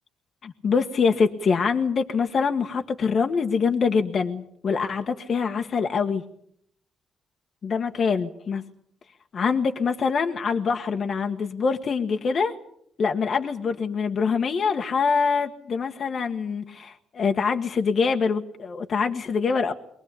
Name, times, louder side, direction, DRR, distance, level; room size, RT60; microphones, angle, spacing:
voice 1, 0.4-6.2 7.6-8.6 9.3-12.5 13.0-19.7, left 5 dB, 50° left, 5 dB, 1.5 m, -24 dB
23.5 x 18.5 x 8.4 m, 0.71 s
cardioid pair, 90°, 0 cm